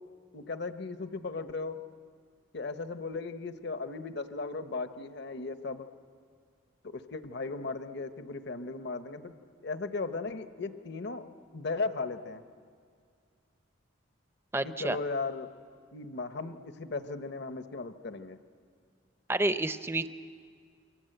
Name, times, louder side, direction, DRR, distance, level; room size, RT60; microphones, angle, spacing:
voice 1, 0.3-1.8 2.5-5.9 6.8-9.3 9.6-12.4 14.6-15.5 15.9-18.4, left 3 dB, 55° left, 9 dB, 1.0 m, -36 dB
voice 2, 14.5-15.0 19.3-20.1, right 2 dB, 10° right, 11 dB, 0.6 m, -29 dB
28.5 x 24.0 x 7.9 m, 2.1 s
head